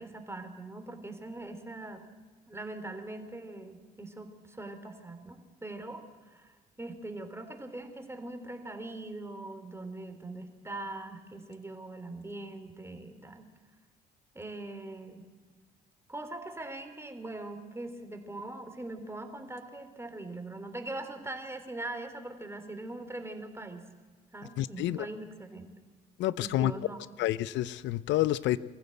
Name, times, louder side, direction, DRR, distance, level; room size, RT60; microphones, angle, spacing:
voice 1, 0.0-2.0 2.5-6.0 6.3-13.4 14.4-15.2 16.1-23.9 24.3-25.7 26.4-27.0, right 2 dB, 15° right, 6 dB, 3.5 m, -41 dB
voice 2, 24.6-25.1 26.2-26.7 27.2-28.6, left 14 dB, 70° left, 19 dB, 0.7 m, -28 dB
23.0 x 14.5 x 7.8 m, 1.4 s
hypercardioid pair, 50°, 20 cm